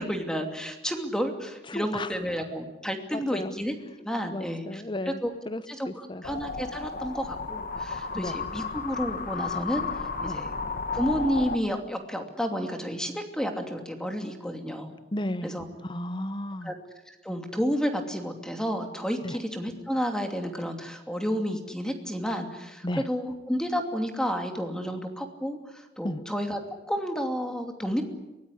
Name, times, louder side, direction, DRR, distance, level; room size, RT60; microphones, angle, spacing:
voice 1, 0.0-5.3 5.8-9.8 10.2-10.5 10.9-14.9 15.4-15.6 16.6-16.7 17.1-26.6 26.9-28.0, equal, 5° left, 4 dB, 2.7 m, -31 dB
voice 2, 1.6-2.2 3.1-3.5 4.3-6.2 8.1-8.4 10.2-10.4 15.1-15.5 15.8-16.7 19.2-19.4 22.8-23.1 26.0-26.2, left 1 dB, 25° left, 14 dB, 0.9 m, -34 dB
sound 1, 6.2-11.6, left 4 dB, 50° left, 1.6 m, -33 dB
23.5 x 19.0 x 10.0 m, 1.0 s
head